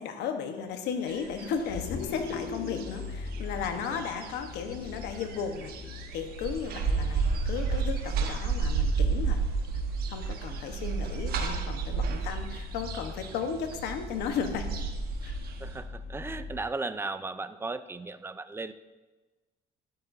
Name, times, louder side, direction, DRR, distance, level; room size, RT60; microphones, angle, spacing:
voice 1, 0.0-5.7 6.1-9.4 9.7-9.8 10.1-14.8 15.2-15.4, left 6 dB, 85° left, 6 dB, 1.1 m, -35 dB
Vehicle, 1.1-16.6, left 4 dB, 65° left, 1.0 m, -42 dB
sound 1, 1.1-1.5 1.8-15.8, right 4 dB, 65° right, 1.2 m, -32 dB
voice 2, 15.6-18.7, right 3 dB, 15° right, 12 dB, 0.5 m, -36 dB
12.5 x 12.0 x 2.7 m, 1.2 s
cardioid pair, 110°, 17 cm